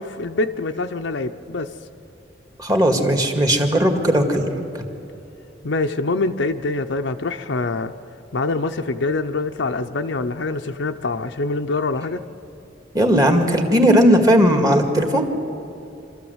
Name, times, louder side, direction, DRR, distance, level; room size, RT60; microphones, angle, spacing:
voice 1, 0.0-1.7 5.6-7.9 8.3-12.3, left 3 dB, 70° left, 6 dB, 0.7 m, -25 dB
voice 2, 2.6-4.5 12.9-15.3, equal, 20° right, 4 dB, 2.0 m, -17 dB
25.5 x 14.0 x 8.0 m, 2.8 s
head